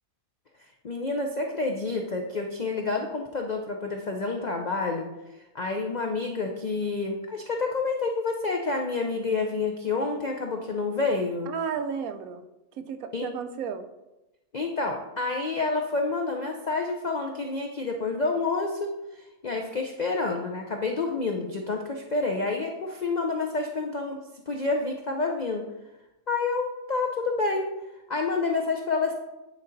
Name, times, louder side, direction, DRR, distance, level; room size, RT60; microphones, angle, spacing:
voice 1, 0.8-5.1 5.5-11.5 13.1-13.3 14.5-24.2 24.5-25.6 26.3-27.7 28.1-29.1, left 3 dB, 60° left, 2 dB, 0.4 m, -28 dB
voice 2, 11.5-12.4 12.8-13.9, right 6 dB, 75° right, 9 dB, 1.0 m, -33 dB
9.2 x 4.0 x 3.9 m, 0.99 s
omnidirectional pair, 1.6 m